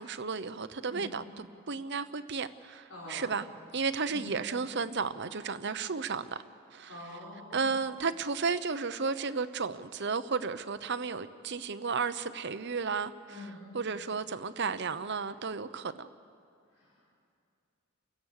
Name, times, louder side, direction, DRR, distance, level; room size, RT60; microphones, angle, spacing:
voice 1, 0.0-3.5 3.7-6.4 6.7-6.9 7.5-13.1 13.7-16.1, right 5 dB, 55° right, 0.8 m, -33 dB
voice 2, 2.9-3.4 4.0-4.3 6.9-7.8 13.3-13.7 16.7-17.0, left 2 dB, 75° left, 6.0 m, -45 dB
30.0 x 16.5 x 6.6 m
head